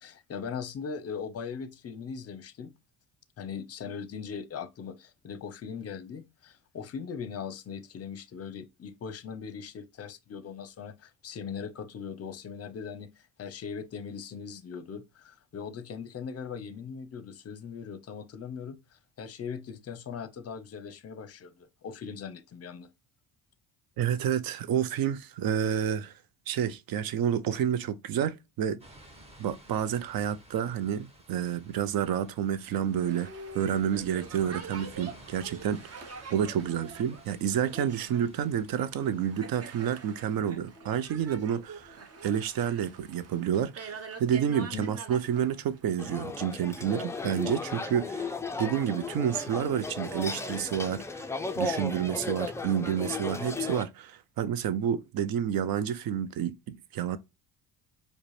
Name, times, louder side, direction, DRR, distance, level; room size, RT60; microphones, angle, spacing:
voice 1, 0.0-2.7 3.4-22.9 44.6-44.8, left 6 dB, 35° left, 0.6 m, -40 dB
voice 2, 24.0-26.1 26.5-28.8 29.4-33.3 33.5-36.0 36.3-48.3 48.6-51.3 51.6-57.2, right 9 dB, 60° right, 0.6 m, -29 dB
sound 1, 28.8-39.4, right 1 dB, 15° right, 1.1 m, -55 dB
Boat Water vehicle, 32.8-46.0, right 4 dB, 35° right, 0.9 m, -45 dB
sound 2, 46.0-53.8, left 3 dB, 10° left, 0.3 m, -35 dB
4.8 x 2.2 x 3.1 m
cardioid pair, 85°, 41 cm